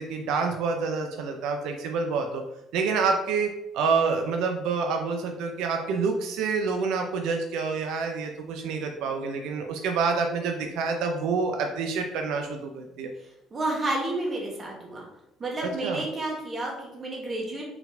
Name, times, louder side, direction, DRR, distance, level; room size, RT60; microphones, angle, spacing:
voice 1, 0.0-2.4 2.7-13.1 15.6-16.1, right 5 dB, 80° right, 4 dB, 0.5 m, -27 dB
voice 2, 13.5-15.0 15.4-17.6, right 2 dB, 30° right, -2 dB, 1.2 m, -30 dB
4.4 x 4.0 x 2.6 m, 0.88 s
cardioid pair, 145°, 0 cm